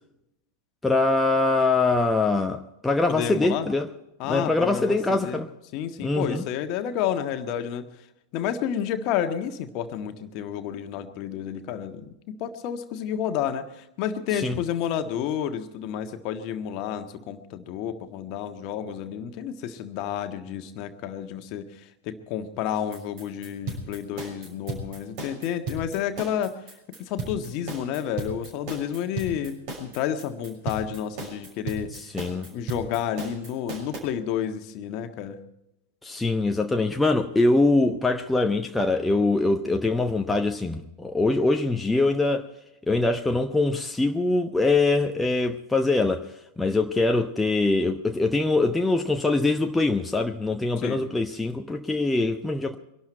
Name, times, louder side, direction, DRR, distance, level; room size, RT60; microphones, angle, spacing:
voice 1, 0.8-3.9 4.3-5.5 6.0-6.4 14.3-14.6 31.9-32.5 36.0-42.5 42.9-52.8, left 2 dB, 10° left, 0.9 m, -23 dB
voice 2, 3.1-3.7 4.2-5.4 5.7-7.8 8.3-26.5 27.0-31.9 32.5-35.4 50.8-51.0, left 9 dB, 40° left, 1.5 m, -30 dB
sound 1, 22.7-34.0, right 3 dB, 45° right, 6.3 m, -35 dB
24.0 x 12.0 x 4.5 m
figure-of-eight pair, 90°, 0 cm